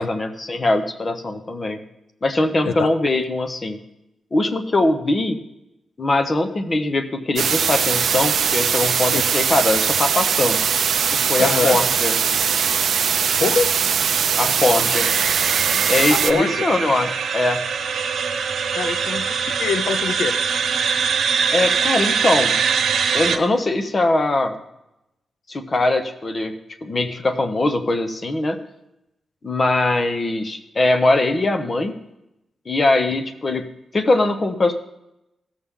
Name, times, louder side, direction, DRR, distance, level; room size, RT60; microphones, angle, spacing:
voice 1, 0.0-1.8 2.2-3.8 4.3-5.4 6.0-10.6 11.1-12.2 14.4-15.1 15.9-17.6 21.5-22.5 23.1-24.6 25.5-26.5 26.8-28.6 29.4-32.0 32.7-33.7 33.9-34.7, left 2 dB, 30° left, 8 dB, 0.8 m, -21 dB
sound 1, 7.4-16.3, right 7 dB, 65° right, 0.5 m, -20 dB
voice 2, 11.4-11.8 13.4-13.7 16.1-16.7 18.7-20.4, left 5 dB, 80° left, 11 dB, 0.5 m, -24 dB
sound 2, 14.9-23.4, right 6 dB, 90° right, 1.0 m, -23 dB
16.5 x 6.9 x 3.6 m, 0.89 s
wide cardioid pair, 160°, 0 cm